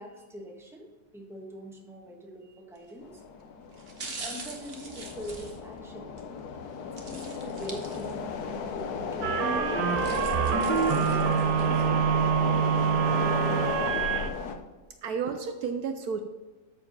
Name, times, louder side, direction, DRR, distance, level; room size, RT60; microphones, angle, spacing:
voice 1, 0.0-3.2 4.0-6.1 6.8-9.6 10.0-12.3, equal, ahead, 0 dB, 1.3 m, -44 dB
sound 1, 2.8-3.0 3.7-6.3 7.0-8.4 8.8-8.9 9.7-11.9 12.3-12.4, right 3 dB, 40° right, 1.3 m, -43 dB
sound 2, 3.0-14.5, left 5 dB, 65° left, 1.3 m, -34 dB
sound 3, 9.2-14.3, right 9 dB, 90° right, 1.4 m, -26 dB
voice 2, 15.0-16.2, right 6 dB, 70° right, 7 dB, 1.1 m, -32 dB
13.0 x 4.8 x 5.4 m, 1.2 s
omnidirectional pair, 1.8 m